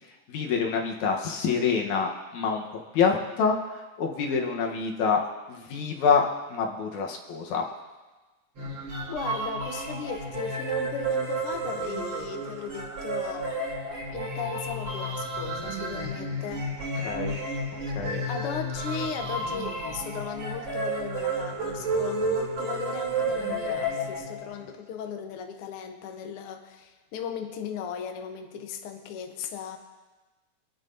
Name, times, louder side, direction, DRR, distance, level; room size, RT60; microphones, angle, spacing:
voice 1, 0.3-5.2 5.5-7.7 17.0-17.4 17.9-18.2, left 5 dB, 80° left, 1 dB, 2.6 m, -26 dB
sound 1, 8.6-24.6, right 1 dB, 55° right, 3.5 m, -31 dB
voice 2, 9.1-13.6 14.1-16.7 18.3-29.8, left 7 dB, 65° left, 4 dB, 1.5 m, -37 dB
24.5 x 10.5 x 2.7 m, 1.2 s
omnidirectional pair, 3.4 m